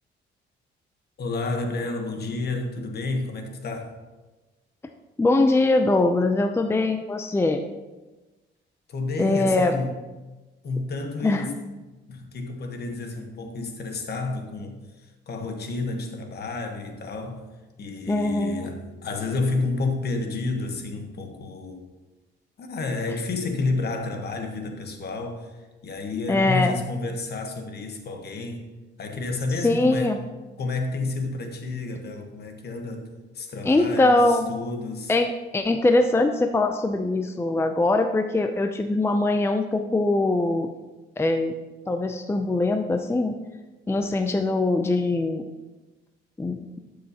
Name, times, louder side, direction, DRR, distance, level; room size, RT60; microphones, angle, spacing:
voice 1, 1.2-4.0 8.9-10.0 10.6-11.6 12.1-17.5 17.8-21.8 22.6-28.7 29.0-30.1 30.6-35.1, left 3 dB, 55° left, 4 dB, 1.3 m, -30 dB
voice 2, 5.2-7.6 9.2-9.7 11.2-11.5 18.1-18.7 26.3-26.7 29.6-30.2 33.6-34.5 35.1-40.7 41.2-41.5 41.9-43.4 43.9-45.4 46.4-46.6, left 2 dB, 10° left, 6 dB, 0.5 m, -22 dB
12.0 x 6.4 x 2.9 m, 1.2 s
cardioid pair, 90°, 20 cm